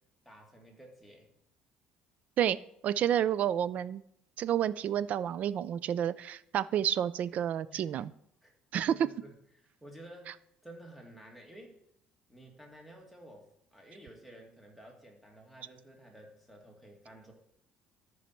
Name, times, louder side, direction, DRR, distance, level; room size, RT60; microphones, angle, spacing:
voice 1, 0.2-1.3 7.7-7.8 8.4-8.5 8.8-11.8 12.3-17.3, right 1 dB, ahead, 0 dB, 2.2 m, -52 dB
voice 2, 2.8-4.0 4.4-8.1 8.7-8.9, right 10 dB, 55° right, 17 dB, 0.4 m, -30 dB
13.5 x 5.5 x 4.5 m, 0.73 s
cardioid pair, 120°, 3 cm